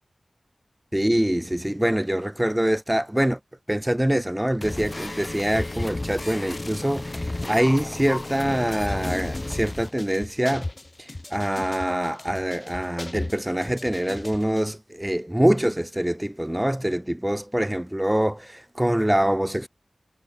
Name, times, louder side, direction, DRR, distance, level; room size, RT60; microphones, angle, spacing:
voice 1, 0.9-3.4 3.7-10.7 11.0-19.7, right 1 dB, 10° right, 3.6 m, -24 dB
sound 1, 4.6-14.6, left 2 dB, 30° left, 4.0 m, -33 dB
wide cardioid pair, 90°, 0 cm